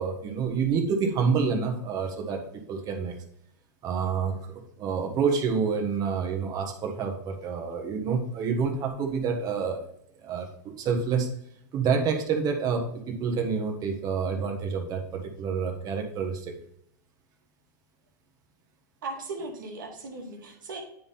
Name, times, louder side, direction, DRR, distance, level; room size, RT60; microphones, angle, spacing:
voice 1, 0.0-2.4 2.7-3.1 3.8-9.9 10.2-11.3 11.7-16.6, right 5 dB, 35° right, 3 dB, 1.3 m, -28 dB
voice 2, 19.0-20.8, right 3 dB, 80° right, 1 dB, 1.7 m, -37 dB
9.5 x 3.7 x 4.2 m, 0.75 s
hypercardioid pair, 115°, 10 cm